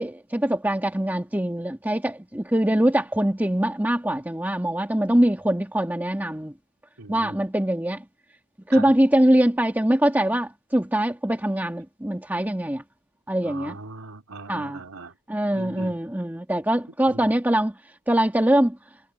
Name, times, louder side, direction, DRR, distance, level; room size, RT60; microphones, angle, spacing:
voice 1, 0.0-6.5 7.1-8.0 8.7-12.8 13.3-13.8 14.5-14.8 15.3-17.7 18.1-18.8, right 1 dB, 10° right, 1.7 m, -23 dB
voice 2, 7.0-7.4 8.7-8.9 13.4-15.2 15.5-16.0 17.1-17.3, right 3 dB, 75° right, 2.8 m, -39 dB
head